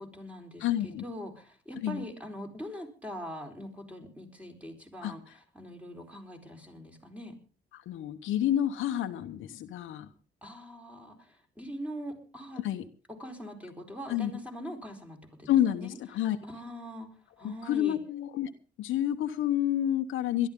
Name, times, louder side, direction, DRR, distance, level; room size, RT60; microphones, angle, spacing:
voice 1, 0.0-7.4 10.4-12.6 13.1-15.9 16.4-17.1 17.4-18.0, equal, 5° right, 3 dB, 4.3 m, -42 dB
voice 2, 0.6-1.0 1.8-2.0 5.0-5.1 7.7-10.1 12.6-12.8 14.1-14.3 15.5-16.4 17.4-18.5 18.8-20.5, left 11 dB, 85° left, 7 dB, 1.1 m, -29 dB
21.0 x 12.5 x 3.7 m, 0.35 s
cardioid pair, 90°, 20 cm